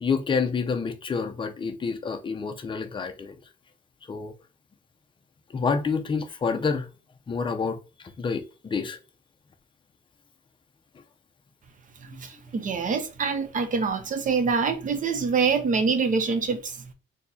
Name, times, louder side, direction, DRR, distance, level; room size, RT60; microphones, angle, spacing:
voice 1, 0.0-3.4 4.1-4.3 5.5-6.9 7.3-7.8 8.2-9.0, left 5 dB, 25° left, 0.5 m, -28 dB
voice 2, 12.0-16.9, right 5 dB, 40° right, 0.6 m, -25 dB
4.3 x 2.8 x 2.6 m
wide cardioid pair, 170°, 21 cm